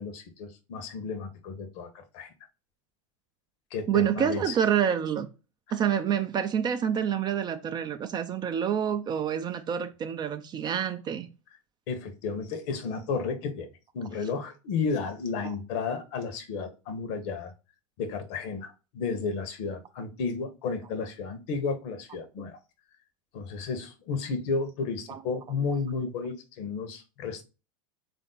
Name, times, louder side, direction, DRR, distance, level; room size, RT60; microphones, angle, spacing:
voice 1, 0.0-2.3 3.7-4.5 11.9-13.7 13.9-17.5 18.0-22.6 23.3-27.4, left 4 dB, 55° left, 0.9 m, -32 dB
voice 2, 3.9-5.3 5.7-11.3 15.4-15.5 22.4-22.5 25.1-25.2, right 8 dB, 25° right, 0.4 m, -27 dB
3.6 x 2.6 x 3.7 m
figure-of-eight pair, 85°, 17 cm